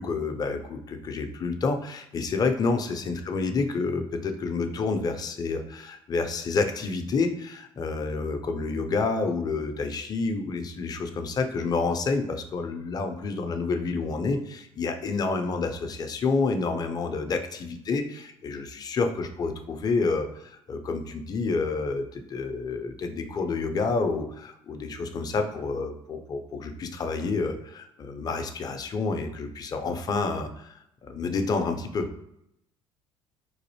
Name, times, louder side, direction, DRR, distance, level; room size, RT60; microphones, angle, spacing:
voice 1, 0.0-32.1, left 4 dB, 30° left, 5 dB, 0.4 m, -29 dB
3.3 x 2.6 x 2.7 m, 0.78 s
figure-of-eight pair, 55°, 14 cm